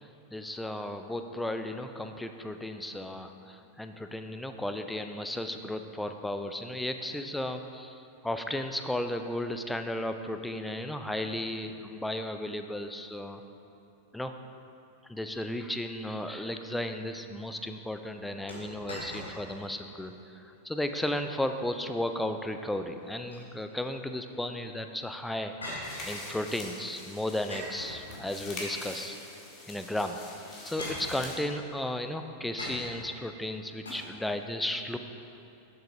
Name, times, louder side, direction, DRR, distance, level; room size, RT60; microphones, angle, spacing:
voice 1, 0.3-13.4 14.1-14.3 15.1-25.5 26.1-29.2 29.7-30.2 30.6-35.0, left 1 dB, 5° left, 7 dB, 0.5 m, -34 dB
sound 1, 18.5-19.7 20.0-20.1 20.7-21.1 23.0-23.9 25.6-26.6 27.5-28.7 29.8-29.9 30.8-31.6 32.6-33.2 33.8-33.9, left 1 dB, 75° left, 2.1 m, -41 dB
sound 2, 25.8-31.4, left 2 dB, 30° left, 1.9 m, -43 dB
7.8 x 6.9 x 4.9 m, 2.9 s
figure-of-eight pair, 90°, 0 cm